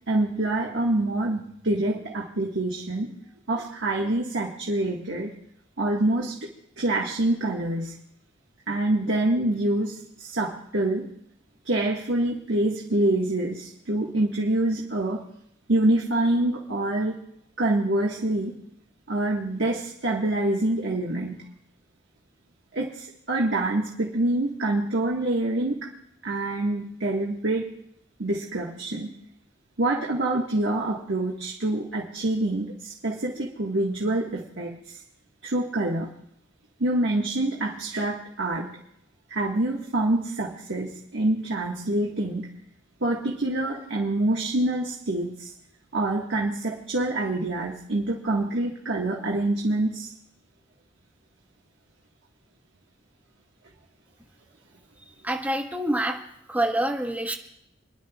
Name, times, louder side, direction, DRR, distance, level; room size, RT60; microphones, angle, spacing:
voice 1, 0.1-3.1 3.5-5.3 5.8-6.4 6.8-8.0 8.7-11.1 11.6-15.2 15.7-17.2 17.6-18.5 19.1-21.4 22.7-25.9 26.2-27.8 28.2-29.1 29.8-35.0 35.4-36.1 36.8-38.7 39.3-42.5 43.0-45.5 45.9-50.1, right 1 dB, 70° right, -2 dB, 1.6 m, -26 dB
voice 2, 55.2-56.2 56.5-57.3, right 1 dB, 10° right, 1 dB, 1.5 m, -26 dB
29.5 x 11.0 x 2.4 m, 0.78 s
head